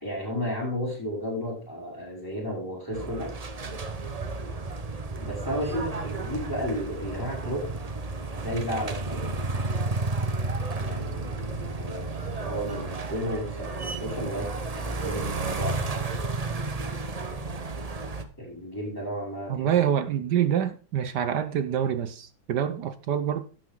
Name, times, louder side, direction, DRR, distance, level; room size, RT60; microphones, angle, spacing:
voice 1, 0.0-3.3 5.2-7.7 8.3-9.3 10.8-14.5 14.8-16.0 18.4-19.7, equal, 10° left, 5.5 m, -33 dB
sound 1, 2.9-18.2, right 3 dB, 40° right, 0.5 m, -32 dB
voice 2, 19.5-23.4, right 9 dB, 65° right, 1.3 m, -26 dB
12.0 x 8.6 x 3.8 m
omnidirectional pair, 2.1 m